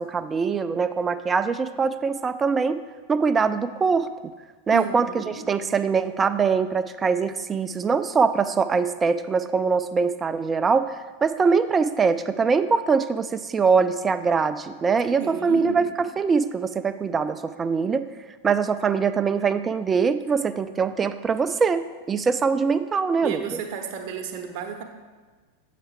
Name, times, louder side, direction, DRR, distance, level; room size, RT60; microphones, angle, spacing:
voice 1, 0.0-2.8 3.1-4.3 4.7-18.1 18.4-23.6, right 5 dB, 20° right, 12 dB, 0.3 m, -23 dB
voice 2, 4.7-5.4 15.2-15.8 23.2-24.8, right 6 dB, 45° right, 4 dB, 0.7 m, -33 dB
7.9 x 5.7 x 3.3 m, 1.3 s
figure-of-eight pair, 90°, 0 cm